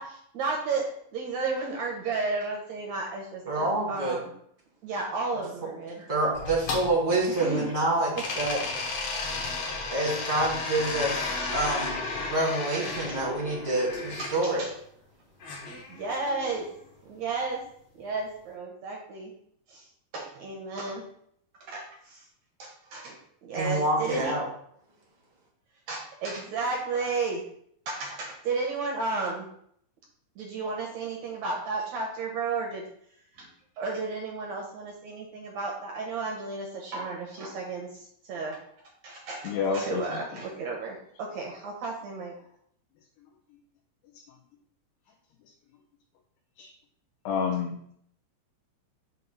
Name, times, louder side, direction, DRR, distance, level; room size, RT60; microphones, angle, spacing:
voice 1, 0.0-4.3 4.8-6.0 7.4-7.7 11.4-11.5 12.7-13.2 14.2-14.7 15.9-16.7 17.0-17.6 18.0-19.3 19.7-19.9 20.1-21.0 21.7-22.2 22.6-24.3 25.9-27.4 27.9-29.5 30.4-32.8 33.4-33.5 33.8-38.6 39.0-42.3, right 3 dB, 75° right, 0 dB, 1.7 m, -33 dB
voice 2, 3.4-4.2 6.0-8.6 9.9-14.6 23.5-24.4, right 2 dB, 30° right, -6 dB, 0.7 m, -27 dB
sound 1, 6.4-7.8 8.2-14.3 15.4-16.5, left 3 dB, 60° left, 1.7 m, -33 dB
voice 3, 39.4-40.5 46.6-46.7 47.3-47.8, left 6 dB, 85° left, -1 dB, 2.6 m, -29 dB
6.9 x 2.7 x 5.4 m, 0.68 s
omnidirectional pair, 4.1 m